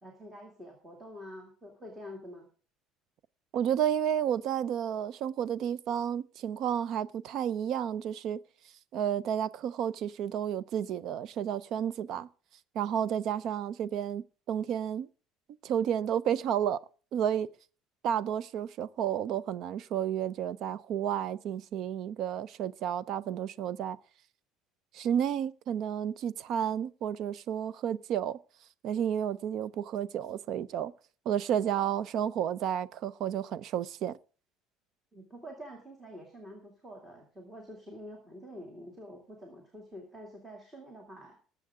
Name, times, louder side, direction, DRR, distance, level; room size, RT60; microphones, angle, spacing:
voice 1, 0.0-2.5 35.1-41.3, equal, 5° right, 2.5 m, -47 dB
voice 2, 3.5-8.4 8.9-12.3 12.7-15.1 15.6-16.8 17.1-17.5 18.0-24.0 24.9-28.4 28.8-30.9 31.3-34.2, right 9 dB, 45° right, 0.5 m, -31 dB
20.0 x 7.7 x 3.7 m
cardioid pair, 170°, 0 cm